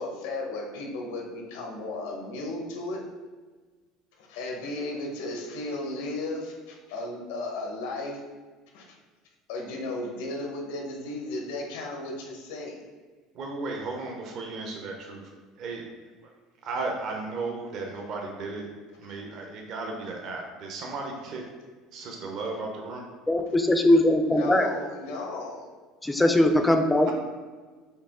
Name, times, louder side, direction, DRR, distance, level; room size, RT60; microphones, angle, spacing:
voice 1, 0.0-3.0 4.2-8.2 8.7-8.9 9.5-12.8 19.1-19.2 24.3-25.6 27.0-27.1, left 2 dB, 90° left, 0 dB, 1.0 m, -35 dB
voice 2, 13.3-15.3 15.6-15.8 16.6-18.7 19.0-21.4 21.9-23.1, right 3 dB, 45° right, 1 dB, 0.5 m, -35 dB
voice 3, 23.3-24.7 26.0-27.1, left 1 dB, 5° left, 5 dB, 0.3 m, -20 dB
4.5 x 2.9 x 3.6 m, 1.4 s
cardioid pair, 155°, 0 cm